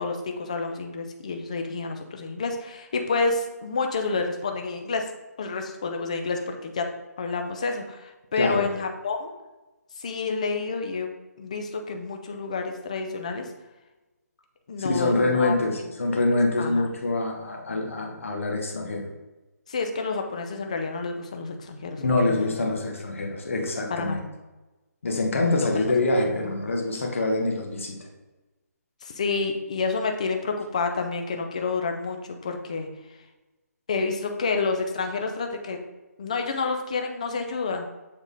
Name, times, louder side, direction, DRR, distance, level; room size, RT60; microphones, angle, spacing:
voice 1, 0.0-5.0 5.4-6.9 7.2-9.3 10.0-11.1 11.4-13.5 14.7-15.8 16.6-16.8 19.7-22.4 23.9-24.2 25.3-25.5 29.0-32.9 33.9-35.8 36.2-37.9, left 4 dB, 25° left, 4 dB, 0.5 m, -29 dB
voice 2, 8.4-8.7 14.8-19.1 22.0-24.2 25.0-28.0, left 2 dB, 50° left, 1 dB, 1.2 m, -25 dB
7.3 x 3.5 x 4.0 m, 1.1 s
hypercardioid pair, 175°, 9 cm